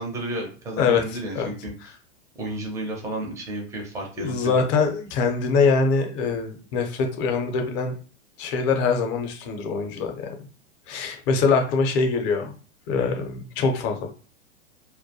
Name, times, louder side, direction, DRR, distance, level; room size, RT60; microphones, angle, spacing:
voice 1, 0.0-1.9 2.4-4.6, right 1 dB, 10° right, 1 dB, 0.4 m, -32 dB
voice 2, 4.2-7.9 8.4-10.4 10.9-12.5 12.9-14.1, left 4 dB, 40° left, 4 dB, 0.6 m, -23 dB
2.2 x 2.1 x 2.7 m, 0.38 s
hypercardioid pair, 110°, 37 cm